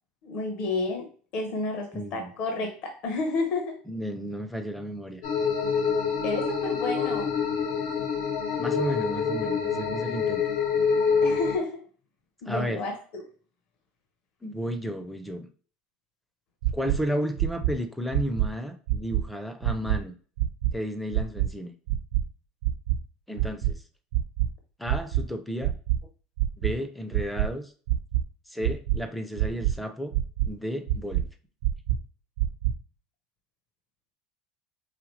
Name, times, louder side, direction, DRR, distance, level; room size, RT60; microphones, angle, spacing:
voice 1, 0.2-3.8 6.2-7.3 11.2-11.8 12.4-13.2, left 3 dB, 45° left, 3 dB, 0.9 m, -31 dB
voice 2, 1.9-2.3 3.9-5.2 8.6-10.4 12.5-12.8 14.4-15.5 16.7-20.1 20.7-21.7 23.3-23.8 24.8-25.7 26.6-27.7 28.5-30.1 30.5-31.2, equal, ahead, 7 dB, 0.4 m, -33 dB
sound 1, 5.2-11.6, left 5 dB, 80° left, 1.4 m, -26 dB
sound 2, 16.6-17.0 17.4-17.7 18.1-18.5 18.9-19.2 19.6-20.0 20.4-20.7 21.1-21.5 21.9-22.2 22.6-23.0 23.4-23.7 24.1-24.5 24.9-25.2 25.6-26.0 26.4-26.7 27.1-27.5 27.9-28.2 28.6-29.0 29.4-29.7 30.1-30.5 30.9-31.2 31.6-32.0 32.4-32.7, right 14 dB, 90° right, 0.7 m, -24 dB
4.9 x 3.4 x 3.1 m, 0.41 s
cardioid pair, 170°, 3 cm